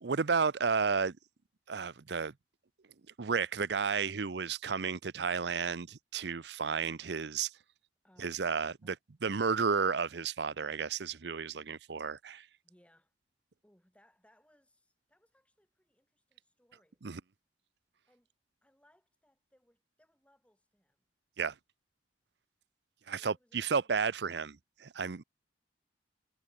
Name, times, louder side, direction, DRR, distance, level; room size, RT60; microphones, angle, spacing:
voice 1, 0.0-1.2 1.7-2.3 3.2-7.5 8.2-9.0 9.2-12.5 17.0-17.2 21.4-21.5 23.1-25.2, right 5 dB, 65° right, 0.6 m, -32 dB
voice 2, 8.0-8.4 8.8-9.0 12.6-13.1 13.6-17.0 18.1-18.3 18.6-21.0 23.1-24.0, equal, 5° left, 7.3 m, -69 dB
head